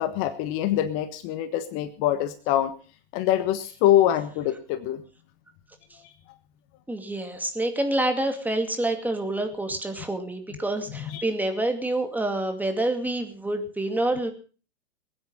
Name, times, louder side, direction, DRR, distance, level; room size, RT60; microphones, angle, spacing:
voice 1, 0.0-2.7 3.1-5.0 10.9-11.2, left 12 dB, 40° left, 11 dB, 1.4 m, -24 dB
voice 2, 6.9-14.3, right 1 dB, 5° right, 5 dB, 2.4 m, -27 dB
21.0 x 9.6 x 5.4 m, 0.38 s
hypercardioid pair, 110°, 33 cm